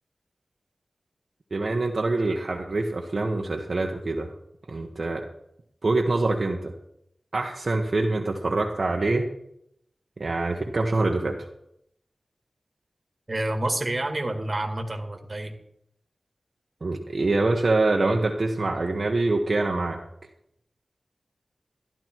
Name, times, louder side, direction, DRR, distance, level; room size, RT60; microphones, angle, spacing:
voice 1, 1.5-4.3 4.7-5.3 5.8-6.7 7.3-9.3 10.2-11.4 16.8-20.0, right 2 dB, 55° right, 1 dB, 1.3 m, -25 dB
voice 2, 13.3-15.5, right 1 dB, 35° right, 4 dB, 2.1 m, -28 dB
13.5 x 11.5 x 4.6 m, 0.75 s
wide cardioid pair, 75°, 0 cm